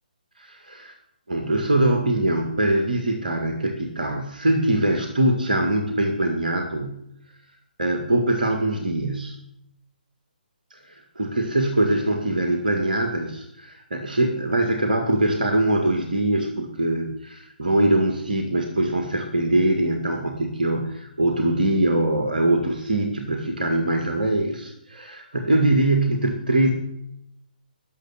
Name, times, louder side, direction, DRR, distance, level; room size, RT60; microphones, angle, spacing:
voice 1, 0.4-0.9 1.3-7.0 7.8-9.4 10.7-26.7, right 1 dB, 65° right, 4 dB, 2.0 m, -23 dB
13.5 x 6.8 x 10.0 m, 0.81 s
figure-of-eight pair, 135°, 5 cm